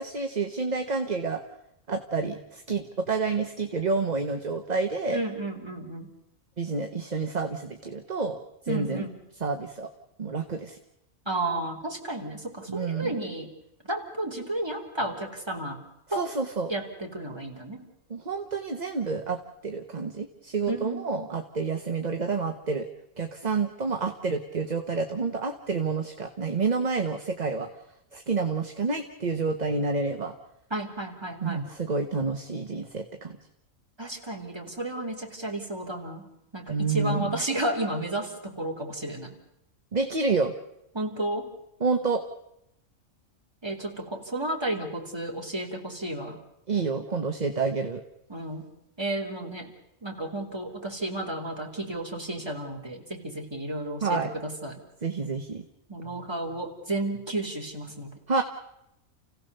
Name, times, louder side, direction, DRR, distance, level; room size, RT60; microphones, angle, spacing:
voice 1, 0.0-1.4 1.9-5.2 6.6-8.4 8.6-9.1 9.4-9.9 10.2-10.8 12.7-13.1 16.1-16.7 18.1-22.9 23.2-27.7 28.1-30.3 31.4-33.4 36.7-37.4 39.9-40.5 41.8-42.2 46.7-48.0 54.0-54.3 55.0-55.6 58.3-58.4, right 4 dB, 35° right, 5 dB, 1.3 m, -29 dB
voice 2, 5.1-6.1 8.7-9.1 11.3-13.5 13.9-15.8 16.1-16.2 16.7-17.8 20.7-21.3 30.7-31.6 34.0-39.4 40.9-41.5 43.6-46.4 48.3-48.7 49.0-49.7 50.0-54.8 55.9-58.1, right 1 dB, 20° right, 1 dB, 3.0 m, -32 dB
29.5 x 16.5 x 6.8 m, 0.84 s
omnidirectional pair, 1.4 m